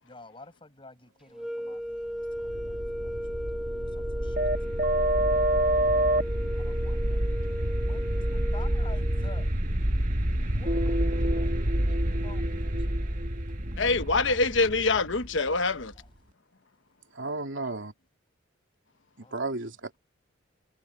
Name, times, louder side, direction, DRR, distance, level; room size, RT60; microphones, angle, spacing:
voice 1, 0.0-3.3 3.8-5.3 6.5-7.5 7.9-9.5 10.5-13.3 14.1-14.6 15.7-16.1 17.6-17.9 19.2-19.7, left 2 dB, 25° left, 7.6 m, -51 dB
sound 1, 1.3-9.5, equal, 5° right, 1.1 m, -36 dB
sound 2, 2.3-16.0, right 1 dB, 40° right, 1.7 m, -28 dB
voice 2, 13.8-15.9, left 3 dB, 65° left, 1.1 m, -25 dB
voice 3, 17.1-17.9 19.2-20.0, right 2 dB, 65° right, 3.2 m, -33 dB
head